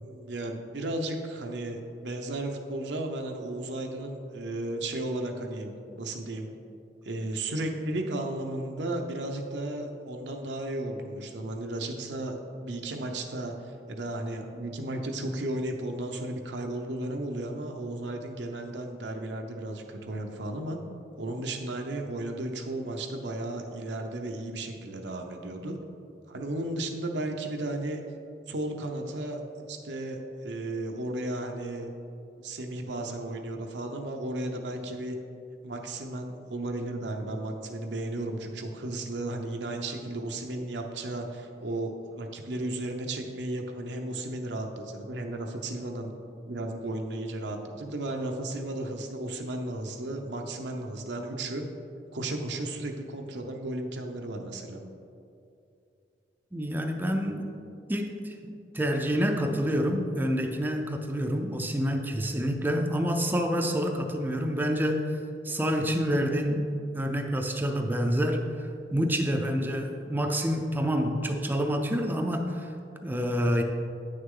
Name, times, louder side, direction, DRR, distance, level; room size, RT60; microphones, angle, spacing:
voice 1, 0.0-6.5 7.0-20.8 21.2-25.8 26.3-28.0 28.5-29.4 29.7-31.9 32.4-35.2 35.6-46.1 46.5-51.6 52.1-54.8, right 1 dB, 85° right, 3 dB, 0.8 m, -34 dB
voice 2, 56.5-57.6 57.9-65.2 65.4-66.7 66.9-72.7 73.0-73.6, equal, 10° right, 3 dB, 0.5 m, -28 dB
8.8 x 6.5 x 3.8 m, 2.6 s
head